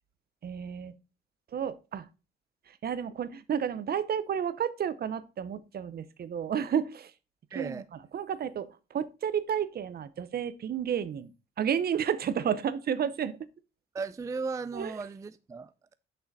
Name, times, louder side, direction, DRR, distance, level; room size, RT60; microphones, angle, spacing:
voice 1, 0.4-0.9 1.5-2.1 2.8-7.1 7.5-7.8 8.1-11.3 11.6-13.4 14.7-14.9, right 8 dB, 50° right, 0.7 m, -31 dB
voice 2, 7.5-7.9 13.9-15.9, right 4 dB, 15° right, 0.4 m, -36 dB
6.6 x 5.6 x 4.0 m
cardioid pair, 90°, 20 cm